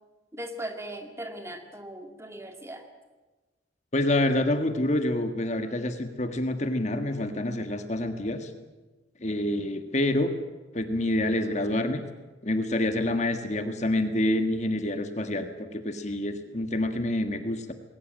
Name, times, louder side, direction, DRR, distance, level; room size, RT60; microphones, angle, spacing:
voice 1, 0.3-2.9, right 1 dB, 15° right, 5 dB, 2.1 m, -38 dB
voice 2, 3.9-8.5 9.2-10.3 10.7-12.0 12.4-17.7, left 1 dB, 40° left, 7 dB, 1.7 m, -27 dB
21.0 x 18.5 x 9.0 m, 1.2 s
head